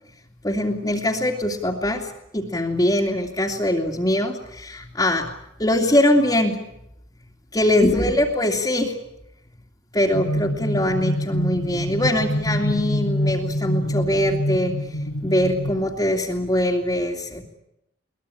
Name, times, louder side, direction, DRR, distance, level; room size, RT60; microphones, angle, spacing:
voice 1, 0.4-5.3 5.6-6.6 7.5-9.0 9.9-17.4, left 1 dB, 20° left, -1 dB, 2.6 m, -22 dB
sound 1, 10.1-15.8, equal, 90° left, 4.4 m, -26 dB
22.5 x 21.0 x 10.0 m, 0.81 s
head